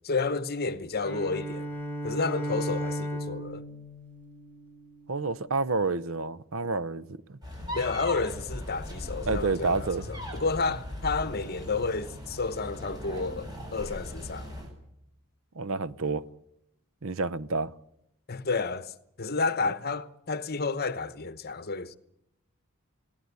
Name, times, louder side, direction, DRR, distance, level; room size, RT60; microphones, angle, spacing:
voice 1, 0.0-1.7 2.0-3.6 7.7-14.5 18.3-18.9 19.2-22.0, left 4 dB, 45° left, 1.0 m, -31 dB
Bowed string instrument, 1.0-5.2, equal, 10° left, 4.8 m, -35 dB
voice 2, 5.1-7.4 9.3-10.0 15.6-16.2 17.0-17.7, right 3 dB, 65° right, 0.8 m, -29 dB
sound 1, 7.4-14.7, equal, 20° right, 6.9 m, -38 dB
21.0 x 17.0 x 8.3 m
head